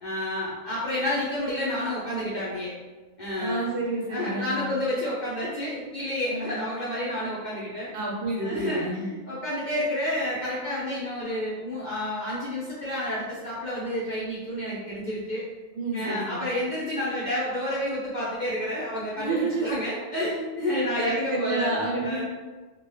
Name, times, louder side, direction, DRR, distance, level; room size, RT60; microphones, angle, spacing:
voice 1, 0.0-2.7 3.2-3.6 4.1-7.9 8.4-15.5 15.9-22.2, left 1 dB, 50° left, -8 dB, 0.6 m, -30 dB
voice 2, 3.4-4.7 6.3-6.6 7.9-9.1 15.7-16.5 19.2-19.8 20.7-22.2, right 2 dB, 65° right, -2 dB, 0.8 m, -29 dB
2.7 x 2.2 x 3.2 m, 1.3 s
omnidirectional pair, 1.3 m